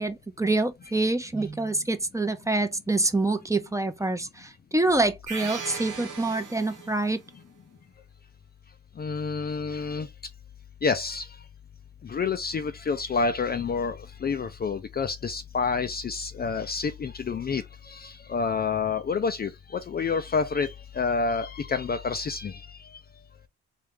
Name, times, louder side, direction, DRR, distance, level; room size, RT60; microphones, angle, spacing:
voice 1, 0.0-7.2, right 2 dB, 10° right, 0.6 m, -26 dB
sound 1, 5.3-7.2, right 5 dB, 90° right, 1.2 m, -37 dB
voice 2, 9.0-10.1 10.8-11.3 12.0-22.7, left 5 dB, 30° left, 0.5 m, -28 dB
3.4 x 2.7 x 3.3 m
cardioid pair, 75°, 30 cm